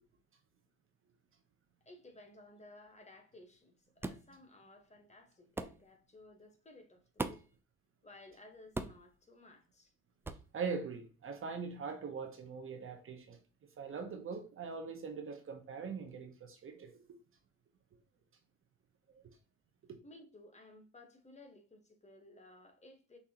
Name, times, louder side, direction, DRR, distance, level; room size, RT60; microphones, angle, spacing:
voice 1, 1.8-7.4 8.0-9.9 20.0-23.2, left 2 dB, 20° left, 1.2 m, -57 dB
sound 1, 4.0-4.3 5.6-5.8 7.2-7.6 8.8-9.1 10.2-10.5, right 2 dB, 5° right, 0.3 m, -39 dB
voice 2, 10.5-13.4 13.8-17.0 19.1-19.2 19.9-20.0, right 5 dB, 35° right, 0.8 m, -42 dB
5.9 x 2.8 x 2.8 m
supercardioid pair, 75°, 35 cm